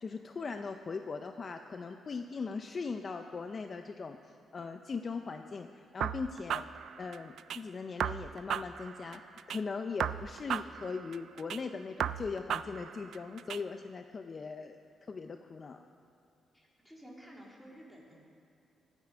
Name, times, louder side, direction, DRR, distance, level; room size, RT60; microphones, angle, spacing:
voice 1, 0.0-6.6 7.0-14.8 15.1-15.8, left 4 dB, 35° left, 6 dB, 0.5 m, -40 dB
sound 1, 6.0-7.6 8.0-9.6 10.0-11.6 12.0-13.6, right 9 dB, 70° right, 0.3 m, -36 dB
voice 2, 16.5-18.3, equal, ahead, -3 dB, 2.7 m, -52 dB
23.5 x 9.2 x 5.0 m, 2.6 s
cardioid pair, 135°, 0 cm